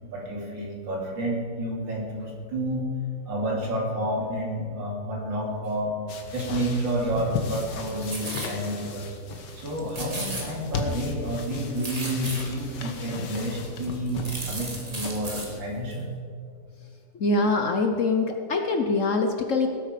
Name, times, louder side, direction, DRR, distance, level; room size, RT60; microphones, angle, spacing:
voice 1, 0.0-2.9 3.2-6.0 6.3-9.1 9.5-16.1, right 1 dB, 75° right, -1 dB, 3.1 m, -30 dB
sound 1, 6.1-15.6, left 4 dB, 65° left, 1.8 m, -37 dB
sound 2, 7.6-8.6 9.0-9.1 9.4-9.6 9.9-11.0 11.3-12.7 13.4-13.5 13.8-15.5 15.9-16.0, right 1 dB, 20° right, 1.8 m, -36 dB
voice 2, 17.1-19.7, left 3 dB, 50° left, 4 dB, 1.1 m, -24 dB
19.0 x 8.5 x 5.1 m, 2.3 s
omnidirectional pair, 2.0 m